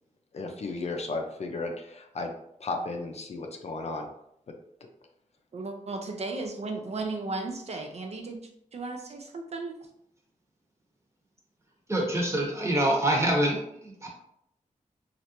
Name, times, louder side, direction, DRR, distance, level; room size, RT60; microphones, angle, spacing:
voice 1, 0.3-2.3 2.6-4.1, left 3 dB, 50° left, 3 dB, 0.5 m, -34 dB
voice 2, 5.5-9.7, right 3 dB, 50° right, 3 dB, 0.4 m, -35 dB
voice 3, 11.9-14.1, right 1 dB, 20° right, -1 dB, 0.9 m, -26 dB
3.2 x 2.5 x 2.9 m, 0.74 s
wide cardioid pair, 90°, 14 cm